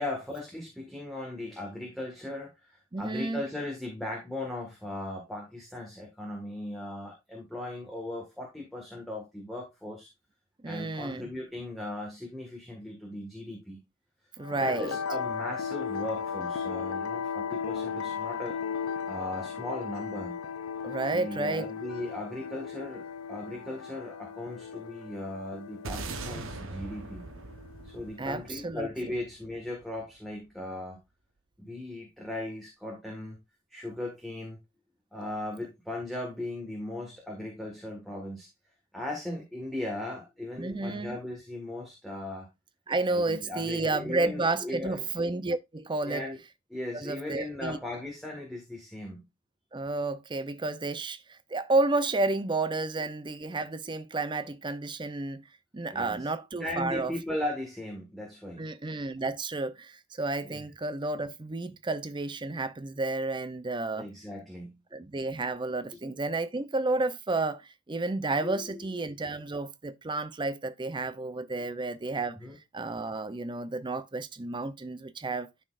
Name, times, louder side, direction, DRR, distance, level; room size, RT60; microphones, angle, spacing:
voice 1, 0.0-10.1 10.6-13.8 14.6-18.6 19.1-20.4 21.1-27.3 27.8-31.0 31.6-33.4 33.7-34.6 35.1-38.5 38.9-42.5 43.1-45.0 46.0-46.4 46.7-49.3 55.9-56.3 56.6-58.7 60.5-60.6 63.9-64.8 68.4-69.1 72.3-72.6, left 1 dB, ahead, 1.7 m, -38 dB
voice 2, 2.9-3.4 10.6-11.3 14.4-15.0 20.8-21.7 28.2-28.9 40.6-41.2 42.9-46.2 46.9-47.8 49.7-55.4 55.7-57.1 58.6-64.1 64.9-72.4 72.7-75.5, right 2 dB, 20° right, 0.5 m, -31 dB
sound 1, 14.4-28.5, left 6 dB, 85° left, 0.4 m, -36 dB
sound 2, 25.8-30.3, right 3 dB, 65° right, 1.0 m, -41 dB
12.5 x 4.3 x 2.5 m
head